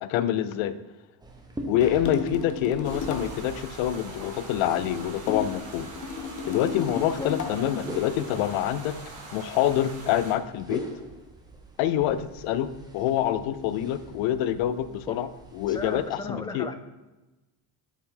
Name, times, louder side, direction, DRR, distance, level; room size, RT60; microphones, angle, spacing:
voice 1, 0.0-0.7 1.7-5.9 6.4-8.9 9.3-10.8 11.8-15.3 15.6-16.7, left 11 dB, 85° left, 13 dB, 0.6 m, -26 dB
sound 1, 1.2-16.1, right 2 dB, 10° right, 0.8 m, -43 dB
sound 2, 2.1-3.4 5.3-7.7, left 6 dB, 40° left, 0.8 m, -33 dB
sound 3, 2.8-10.3, right 2 dB, 40° right, 1.7 m, -43 dB
voice 2, 15.7-16.7, left 4 dB, 10° left, 8 dB, 0.3 m, -35 dB
7.4 x 4.0 x 3.7 m, 1.1 s
cardioid pair, 110°, 46 cm